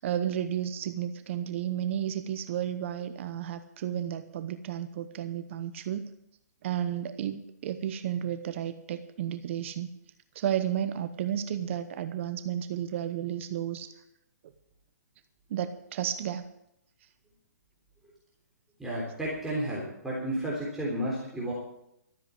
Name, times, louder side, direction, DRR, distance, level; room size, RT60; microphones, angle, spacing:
voice 1, 0.0-6.1 6.6-9.9 10.3-13.9 15.5-16.4, right 10 dB, 45° right, 11 dB, 0.9 m, -32 dB
voice 2, 18.8-21.5, right 1 dB, 5° right, -7 dB, 3.5 m, -32 dB
13.0 x 7.7 x 8.5 m, 0.78 s
hypercardioid pair, 140°, 9 cm